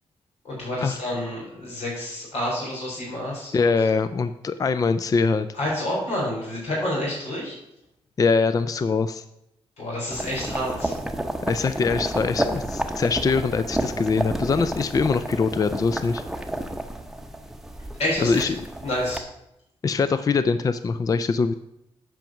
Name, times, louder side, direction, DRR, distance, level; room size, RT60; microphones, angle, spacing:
voice 1, 0.4-3.7 5.5-7.6 9.8-10.9 18.0-18.5 18.8-19.2, left 1 dB, 85° left, -4 dB, 3.7 m, -28 dB
voice 2, 3.5-5.5 8.2-9.2 11.5-16.2 18.2-18.6 19.8-21.5, left 4 dB, 35° left, 12 dB, 0.4 m, -23 dB
sound 1, 10.1-19.2, right 1 dB, 5° right, 0.8 m, -31 dB
9.1 x 5.1 x 5.9 m, 0.83 s
cardioid pair, 95°, 11 cm